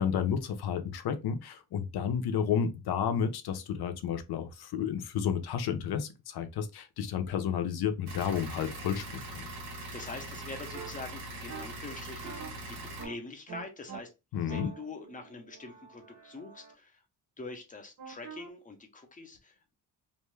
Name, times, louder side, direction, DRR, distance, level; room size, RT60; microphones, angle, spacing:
voice 1, 0.0-9.5 14.3-14.7, left 7 dB, 70° left, 0.6 m, -31 dB
sound 1, 8.1-13.1, right 2 dB, 70° right, 1.0 m, -42 dB
voice 2, 9.9-14.1 14.4-17.0 17.4-19.7, left 3 dB, 20° left, 0.5 m, -45 dB
sound 2, 10.7-10.9 11.5-11.6 12.2-12.5 13.0-13.1 13.5-14.0 14.5-16.7 18.0-18.5, right 6 dB, 45° right, 0.7 m, -45 dB
2.5 x 2.2 x 3.1 m
wide cardioid pair, 165°, 40 cm